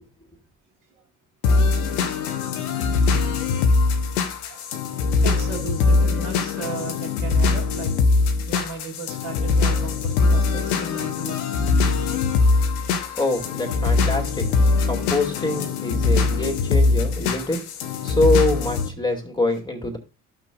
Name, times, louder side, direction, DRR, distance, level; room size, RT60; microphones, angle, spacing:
sound 1, 1.4-18.9, left 4 dB, 75° left, 1.0 m, -21 dB
voice 1, 2.1-2.4 4.3-4.7 5.2-7.9 8.5-11.4, right 4 dB, 60° right, -3 dB, 2.3 m, -35 dB
voice 2, 13.2-14.5 14.8-20.0, left 2 dB, 10° left, 3 dB, 2.3 m, -25 dB
14.0 x 6.0 x 2.4 m, 0.33 s
hypercardioid pair, 50°, 45 cm